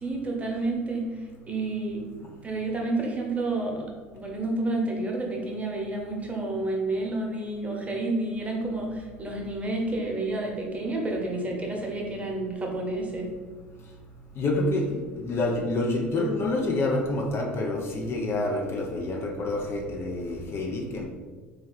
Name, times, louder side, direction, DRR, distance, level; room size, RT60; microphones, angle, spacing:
voice 1, 0.0-1.1 1.5-2.0 2.4-3.9 4.1-13.3, right 2 dB, 20° right, -1 dB, 0.9 m, -30 dB
voice 2, 14.4-21.0, left 2 dB, 40° left, 0 dB, 0.6 m, -27 dB
3.2 x 2.6 x 4.0 m, 1.4 s
hypercardioid pair, 70°, 6 cm